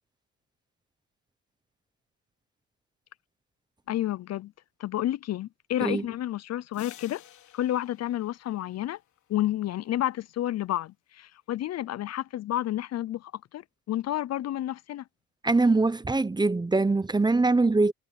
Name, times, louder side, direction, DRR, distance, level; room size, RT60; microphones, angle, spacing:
voice 1, 3.9-4.5 4.8-7.2 7.5-9.0 9.3-15.0, left 13 dB, 60° left, 0.5 m, -30 dB
sound 1, 6.7-9.5, left 11 dB, 75° left, 3.8 m, -52 dB
voice 2, 15.4-17.9, right 3 dB, 15° right, 0.7 m, -23 dB
cardioid pair, 90°, 30 cm